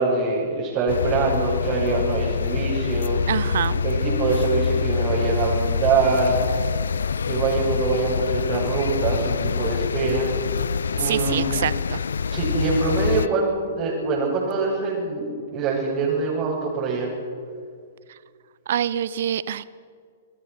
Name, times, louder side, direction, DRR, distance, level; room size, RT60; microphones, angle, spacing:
voice 1, 0.0-3.2 3.8-6.4 7.3-10.3 11.0-11.5 12.3-13.5 13.7-17.1, right 3 dB, 35° right, -5 dB, 7.2 m, -24 dB
sound 1, 0.9-13.3, left 5 dB, 75° left, 0.6 m, -25 dB
voice 2, 3.3-3.8 11.0-12.0 18.1-18.2 18.7-19.6, right 10 dB, 60° right, 17 dB, 0.7 m, -26 dB
28.5 x 21.0 x 6.1 m, 2.2 s
figure-of-eight pair, 115°, 0 cm